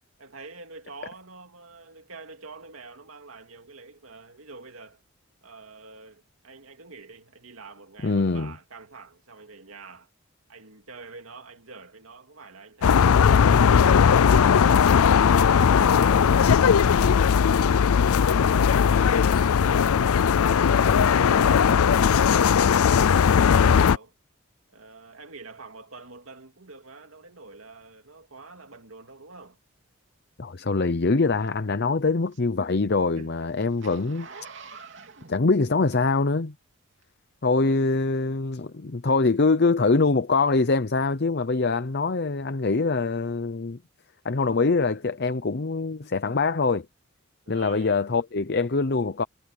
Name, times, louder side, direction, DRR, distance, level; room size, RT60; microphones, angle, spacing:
voice 1, 0.2-5.0 5.4-10.1 10.5-15.0 15.2-16.9 17.4-20.7 21.2-24.1 24.7-29.6 30.5-31.0 33.1-33.5 34.7-34.9 37.6-38.0 47.5-48.1, right 3 dB, 70° right, 2.5 m, -46 dB
voice 2, 8.0-8.5 30.4-34.3 35.3-36.5 37.4-43.8 44.2-46.9 47.5-49.2, left 3 dB, 50° left, 0.7 m, -24 dB
sound 1, 12.8-24.0, left 7 dB, 90° left, 0.4 m, -18 dB
Zipper (clothing), 31.5-36.4 37.0-37.1, right 5 dB, 55° right, 3.2 m, -47 dB
head